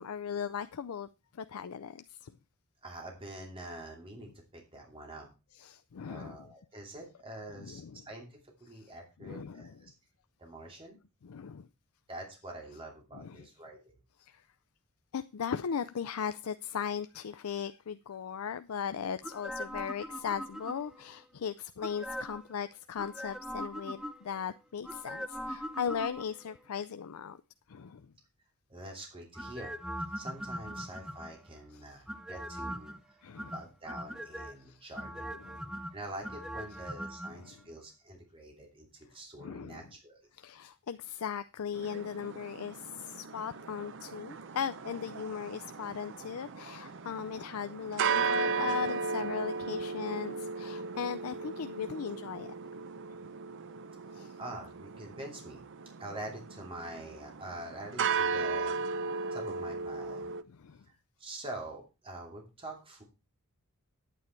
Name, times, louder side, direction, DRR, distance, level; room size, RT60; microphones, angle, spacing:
voice 1, 0.0-2.3 5.6-6.5 7.6-8.1 8.7-8.8 9.2-9.8 11.2-11.7 13.1-13.5 14.2-14.5 15.1-27.4 27.7-28.1 31.7-31.9 33.2-33.5 34.6-34.9 35.4-35.7 37.3-37.6 39.4-39.8 40.3-52.5 54.1-54.4 60.5-60.8, left 7 dB, 80° left, 0.5 m, -38 dB
voice 2, 2.8-5.3 6.0-9.9 10.4-11.0 12.1-13.8 28.7-29.8 30.1-33.2 33.5-35.3 35.9-40.2 54.4-55.6 56.0-59.0 59.3-60.3 61.2-63.0, right 1 dB, 25° right, 2.8 m, -45 dB
sound 1, 19.2-21.1 21.8-22.5 23.0-24.4 24.8-26.5 29.3-31.5 32.1-33.0 33.4-34.5 34.9-37.3 37.6-37.7, equal, 5° right, 0.7 m, -40 dB
sound 2, 41.7-60.4, right 5 dB, 60° right, 0.7 m, -36 dB
9.6 x 9.1 x 4.5 m
head